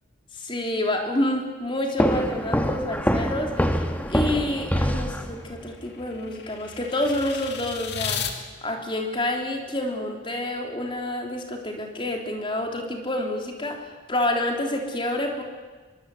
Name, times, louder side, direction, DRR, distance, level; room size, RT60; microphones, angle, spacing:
voice 1, 0.3-8.2 8.6-15.4, left 1 dB, 25° left, 2 dB, 3.6 m, -28 dB
sound 1, 2.0-5.7, equal, 10° left, 1.4 m, -25 dB
sound 2, 5.1-8.3, left 7 dB, 60° left, 2.4 m, -35 dB
24.5 x 23.5 x 8.1 m, 1.4 s
head